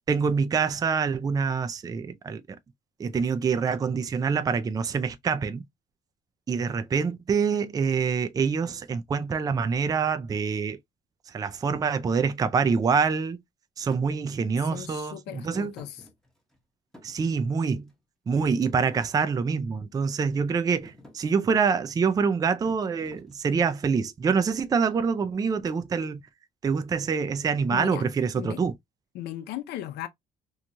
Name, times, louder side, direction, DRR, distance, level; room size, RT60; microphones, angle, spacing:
voice 1, 0.1-2.6 3.0-5.6 6.5-10.8 11.3-13.4 13.8-15.7 17.0-17.9 18.3-26.2 26.6-28.7, right 5 dB, 20° right, 0.4 m, -26 dB
Thump thud, 13.9-14.1 15.5-16.6 16.9-17.9 18.3-19.8 20.3-20.6 20.8-21.2 22.6-23.7, left 1 dB, 5° left, 0.9 m, -50 dB
voice 2, 14.6-16.0 27.7-28.1 28.4-28.6 29.1-30.1, left 12 dB, 75° left, 0.6 m, -37 dB
3.0 x 2.3 x 2.6 m
cardioid pair, 110°, 17 cm